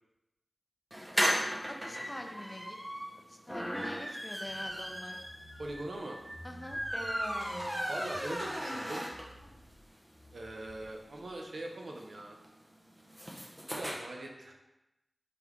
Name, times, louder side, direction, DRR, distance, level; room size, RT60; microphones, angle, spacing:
sound 1, 0.9-9.5 9.9-10.0 10.2-10.3 10.5-13.9, equal, 10° right, 0.8 m, -36 dB
voice 1, 1.7-2.8 3.3-5.2 6.4-6.8, left 1 dB, 25° left, 3 dB, 0.5 m, -45 dB
sound 2, 4.4-11.3, equal, 55° right, 1.3 m, -56 dB
voice 2, 5.6-6.2 7.9-9.0 10.3-12.4 13.7-14.5, right 1 dB, 85° right, 1 dB, 0.6 m, -41 dB
3.8 x 3.4 x 3.0 m, 0.95 s
wide cardioid pair, 50°, 0 cm